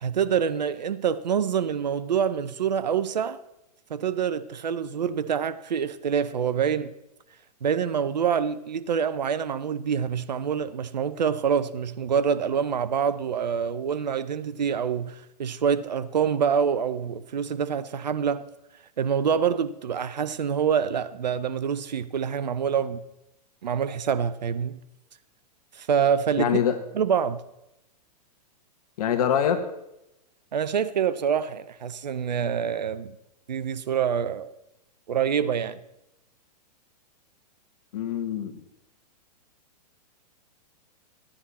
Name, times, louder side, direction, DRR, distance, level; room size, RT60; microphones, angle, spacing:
voice 1, 0.0-3.4 3.9-6.9 7.6-18.4 19.0-23.0 23.6-24.8 25.7-26.6 26.9-27.4 30.5-33.1 33.5-34.5 35.1-35.8, right 7 dB, 90° right, 0.7 m, -26 dB
voice 2, 26.4-26.7 29.0-29.6 37.9-38.6, left 9 dB, 65° left, 1.5 m, -24 dB
14.0 x 10.0 x 4.2 m
hypercardioid pair, 125°, 21 cm